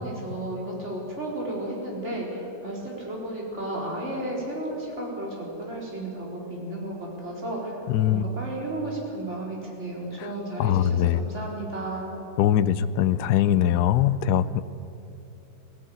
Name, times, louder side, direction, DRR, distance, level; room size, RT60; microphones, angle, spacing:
voice 1, 0.0-7.8 8.1-12.1, right 1 dB, 40° right, -3 dB, 4.7 m, -33 dB
voice 2, 7.9-8.3 10.2-10.3 10.6-11.2 12.4-14.6, left 11 dB, 75° left, 14 dB, 1.1 m, -22 dB
18.0 x 15.0 x 9.5 m, 2.9 s
omnidirectional pair, 1.9 m